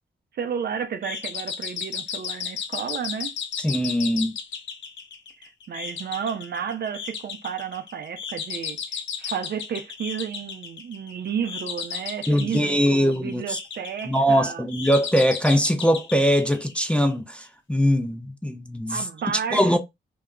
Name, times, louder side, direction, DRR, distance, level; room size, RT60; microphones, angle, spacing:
voice 1, 0.3-3.3 5.4-14.7 18.9-19.8, right 7 dB, 55° right, 0.5 m, -32 dB
sound 1, 1.0-17.1, left 7 dB, 70° left, 0.5 m, -35 dB
voice 2, 3.6-4.3 12.3-13.6 14.1-19.0 19.5-19.8, equal, 5° left, 0.4 m, -22 dB
2.3 x 2.0 x 3.5 m
cardioid pair, 105°, 20 cm